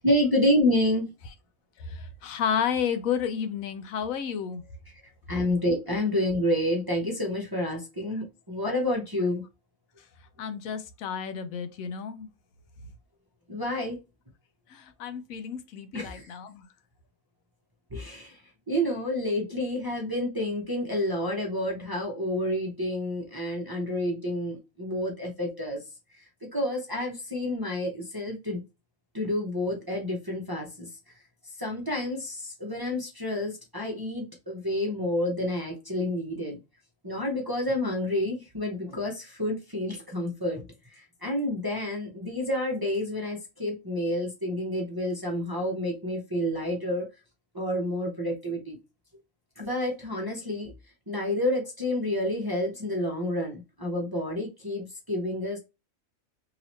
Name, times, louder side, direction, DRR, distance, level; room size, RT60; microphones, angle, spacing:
voice 1, 0.0-1.1 5.3-9.4 13.5-14.0 15.9-16.3 17.9-18.4 18.7-25.8 26.1-28.6 29.1-30.9 31.6-36.6 37.0-40.6 40.9-47.1 47.5-48.8 49.6-50.7 51.1-55.6, left 1 dB, 20° right, 0.6 m, -29 dB
voice 2, 1.8-4.7 10.0-10.1 10.4-12.3 14.7-16.7, left 7 dB, 80° left, 1.0 m, -31 dB
3.0 x 2.9 x 4.1 m
omnidirectional pair, 1.4 m